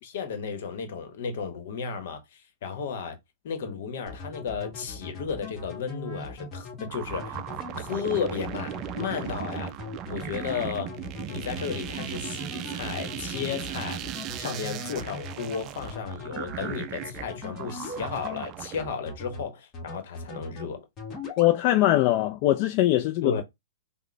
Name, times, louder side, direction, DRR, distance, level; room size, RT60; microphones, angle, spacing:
voice 1, 0.0-3.2 3.4-7.4 7.8-9.7 10.1-11.0 11.3-14.0 14.3-20.9 23.2-23.4, left 6 dB, 65° left, 1.0 m, -33 dB
sound 1, 4.1-18.4 18.8-19.4 19.7-20.7 21.0-21.5, left 3 dB, 25° left, 1.4 m, -40 dB
sound 2, 6.9-18.8, right 11 dB, 30° right, 0.4 m, -37 dB
voice 2, 21.4-23.3, left 15 dB, 45° left, 0.4 m, -21 dB
3.6 x 2.1 x 3.3 m
hypercardioid pair, 135°, 0 cm